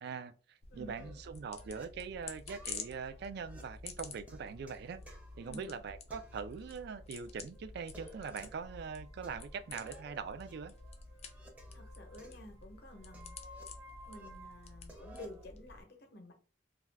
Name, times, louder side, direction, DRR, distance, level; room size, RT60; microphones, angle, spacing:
voice 1, 0.0-10.7, right 6 dB, 60° right, 0.3 m, -43 dB
sound 1, 0.6-15.8, left 4 dB, 35° left, 0.4 m, -50 dB
voice 2, 0.7-1.0 5.4-5.7 11.7-13.4 14.1-16.3, left 1 dB, 60° left, 0.7 m, -51 dB
sound 2, 0.9-1.8 2.5-5.7 6.1-7.0 7.2-7.3 7.8-8.7 9.2-11.8 12.2-14.3 14.6-15.5, right 1 dB, 10° right, 0.6 m, -57 dB
sound 3, 6.6-14.8, equal, 85° right, 1.0 m, -59 dB
2.4 x 2.2 x 3.3 m
head